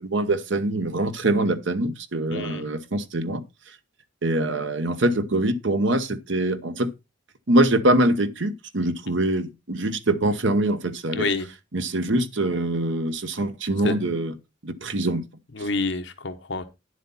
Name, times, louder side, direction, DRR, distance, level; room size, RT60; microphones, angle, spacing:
voice 1, 0.0-3.4 4.2-6.9 7.5-11.3 11.7-14.3 14.6-15.2, right 1 dB, 65° right, 1.0 m, -24 dB
voice 2, 2.3-2.6 11.1-11.5 13.8-13.9 15.5-16.6, left 3 dB, 60° left, 1.2 m, -28 dB
10.0 x 7.5 x 4.2 m
head